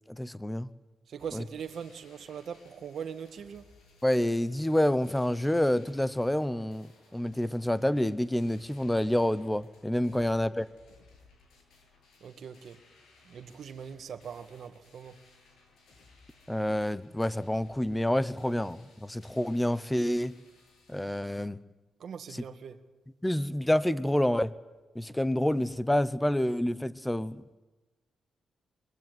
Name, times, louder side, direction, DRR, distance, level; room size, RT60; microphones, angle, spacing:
voice 1, 0.1-0.7 1.3-1.4 4.0-10.7 16.5-20.3 20.9-21.6 22.3-22.4 23.2-24.5 24.9-27.6, left 1 dB, 5° left, 0.9 m, -28 dB
voice 2, 1.1-3.6 10.1-10.4 12.2-12.8 13.3-15.2 22.0-22.8, right 7 dB, 50° right, 1.8 m, -41 dB
sound 1, 1.2-21.2, left 3 dB, 80° left, 7.9 m, -61 dB
24.0 x 23.5 x 9.3 m
wide cardioid pair, 170°, 0 cm